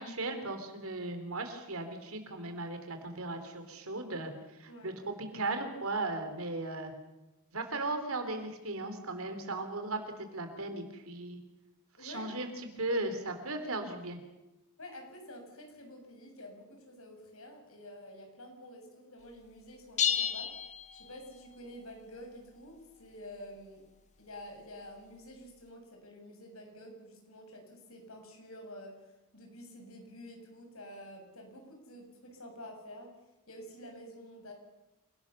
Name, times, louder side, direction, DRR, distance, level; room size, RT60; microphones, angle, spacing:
voice 1, 0.0-4.3 4.6-6.9 7.5-10.0 10.3-11.4 12.0-12.5 12.8-14.2, right 2 dB, 70° right, 7 dB, 3.8 m, -36 dB
voice 2, 12.0-12.4 14.8-23.8 24.2-28.9 29.3-33.1 33.5-34.5, left 1 dB, 70° left, 3 dB, 6.7 m, -49 dB
sound 1, 20.0-21.6, left 8 dB, 35° left, 1.3 m, -32 dB
28.0 x 18.0 x 7.0 m, 1.0 s
head